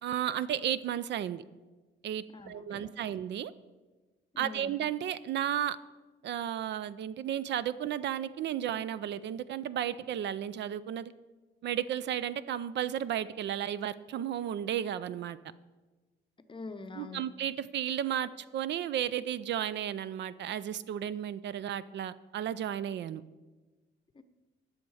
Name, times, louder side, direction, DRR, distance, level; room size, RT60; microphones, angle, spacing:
voice 1, 0.0-1.4 2.0-3.5 4.4-5.8 6.2-11.1 11.6-15.4 17.0-23.2, right 10 dB, 65° right, 16 dB, 0.4 m, -33 dB
voice 2, 2.3-3.1 4.3-4.7 16.5-17.2 24.1-24.2, left 3 dB, 25° left, 10 dB, 0.7 m, -45 dB
11.5 x 6.4 x 4.8 m, 1.2 s
cardioid pair, 90°, 20 cm